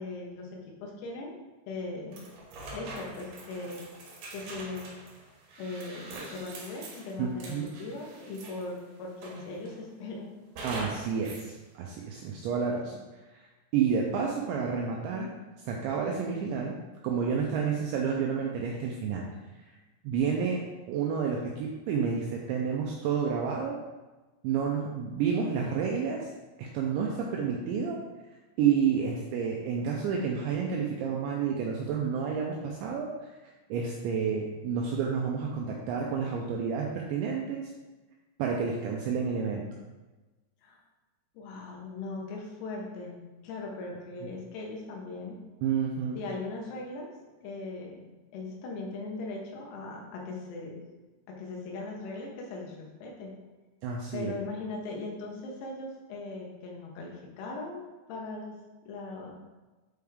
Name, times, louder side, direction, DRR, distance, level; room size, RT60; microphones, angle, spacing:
voice 1, 0.0-1.4 1.7-2.2 2.7-3.8 4.3-4.9 5.6-10.4 40.6-40.8 41.4-45.4 46.2-47.1 47.4-48.0 48.3-50.8 51.3-53.3 54.1-58.6 58.8-59.4, left 3 dB, 90° left, -1 dB, 4.1 m, -39 dB
sound 1, 2.1-8.8 9.2-9.8 10.6-11.5, right 2 dB, 70° right, 2.2 m, -44 dB
voice 2, 7.2-7.7 10.6-13.0 13.3-13.5 13.7-15.3 15.6-16.8 17.0-19.3 19.6-19.8 20.0-20.6 20.9-23.8 24.4-26.3 26.6-28.0 28.6-33.3 33.7-37.7 38.4-39.6 45.6-46.2 53.8-54.3, right 6 dB, 90° right, -1 dB, 2.6 m, -30 dB
9.5 x 4.6 x 3.6 m, 1.2 s
omnidirectional pair, 6.0 m